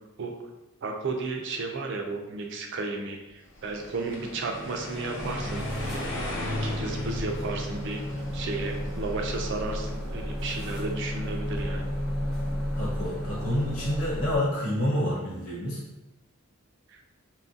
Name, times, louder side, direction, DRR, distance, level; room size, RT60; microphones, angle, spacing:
voice 1, 0.8-6.1 6.6-8.0 8.3-11.9 16.9-17.0, right 3 dB, 55° right, 2 dB, 0.4 m, -33 dB
sound 1, 3.6-9.7, left 1 dB, 55° left, 0.5 m, -37 dB
sound 2, 5.2-14.4, equal, ahead, 0.6 m, -33 dB
voice 2, 12.8-15.8, left 1 dB, 70° left, -6 dB, 1.0 m, -28 dB
2.7 x 2.4 x 2.5 m, 0.99 s
head